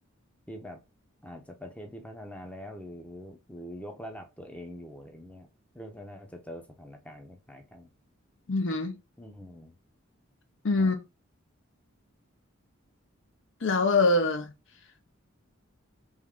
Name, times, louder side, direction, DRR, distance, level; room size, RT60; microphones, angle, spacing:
voice 1, 0.5-0.8 1.2-5.5 5.7-7.9 9.2-9.7 10.8-10.9, equal, 5° left, 0.6 m, -44 dB
voice 2, 8.5-8.9 10.6-11.0 13.6-14.5, left 3 dB, 65° left, 0.6 m, -24 dB
3.6 x 3.1 x 3.5 m
head